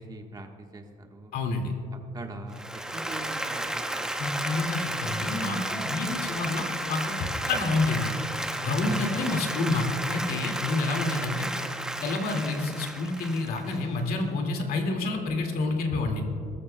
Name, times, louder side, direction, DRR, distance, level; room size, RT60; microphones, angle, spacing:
voice 1, 0.0-1.3 2.1-2.6 2.9-4.1 8.8-9.1, right 3 dB, 25° right, 3 dB, 1.3 m, -41 dB
voice 2, 1.3-1.7 4.2-8.1 8.6-11.5 12.0-16.2, left 3 dB, 65° left, 3 dB, 2.1 m, -28 dB
Applause, 2.5-14.2, right 1 dB, 5° right, 0.7 m, -33 dB
20.5 x 13.5 x 2.2 m, 2.5 s
cardioid pair, 135°, 16 cm